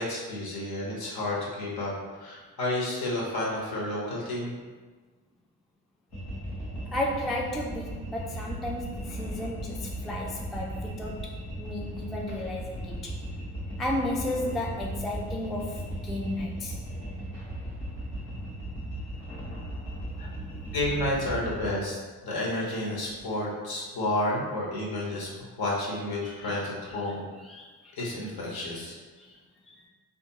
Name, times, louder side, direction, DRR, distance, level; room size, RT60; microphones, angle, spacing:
voice 1, 0.0-4.5 20.2-20.3 20.7-22.0 22.2-27.2 28.0-28.9, left 1 dB, 55° left, -4 dB, 1.2 m, -31 dB
sound 1, 6.1-21.7, right 1 dB, 85° left, 1.0 m, -37 dB
voice 2, 6.9-13.2 13.8-16.8 26.2-26.6 27.0-27.2 27.4-28.0 28.7-28.9 29.2-29.4 29.7-29.8, left 1 dB, ahead, -1 dB, 0.3 m, -34 dB
3.4 x 2.5 x 2.9 m, 1.4 s
hypercardioid pair, 40°, 43 cm